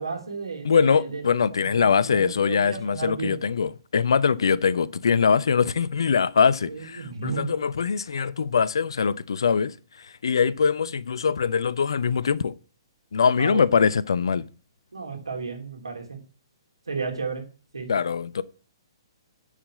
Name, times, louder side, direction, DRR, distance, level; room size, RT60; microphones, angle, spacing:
voice 1, 0.0-1.2 1.5-3.4 6.7-7.5 13.4-13.7 14.9-16.2 16.9-17.4 17.7-17.9, right 5 dB, 80° right, 3.2 m, -33 dB
voice 2, 0.6-9.7 10.2-12.5 13.1-14.4 17.9-18.4, left 6 dB, 65° left, 0.6 m, -22 dB
10.0 x 5.1 x 7.4 m
figure-of-eight pair, 125°, 3 cm